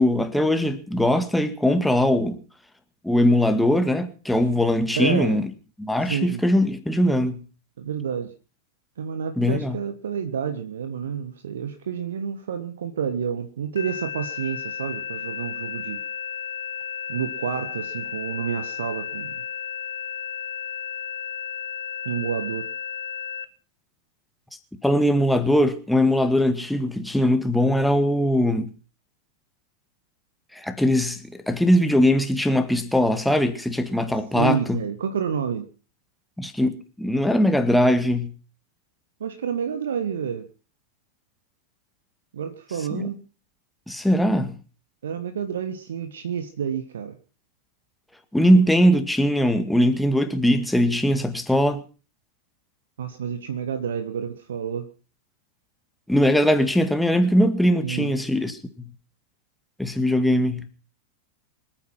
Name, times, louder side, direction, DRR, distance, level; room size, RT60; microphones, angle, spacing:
voice 1, 0.0-2.4 3.0-5.4 5.8-7.4 9.4-9.8 24.8-28.7 30.5-34.8 36.4-38.3 42.9-43.1 43.9-44.6 48.3-51.8 56.1-58.6 59.8-60.7, left 1 dB, 5° left, 2.0 m, -21 dB
voice 2, 4.9-5.4 6.0-6.4 7.8-8.3 9.0-16.0 17.1-19.3 22.0-22.7 34.3-35.7 39.2-40.5 42.3-43.2 45.0-47.2 53.0-54.9 57.8-58.1, right 7 dB, 65° right, 1.5 m, -29 dB
sound 1, 13.8-23.5, left 8 dB, 70° left, 1.1 m, -33 dB
25.5 x 9.2 x 6.0 m
figure-of-eight pair, 90°, 0 cm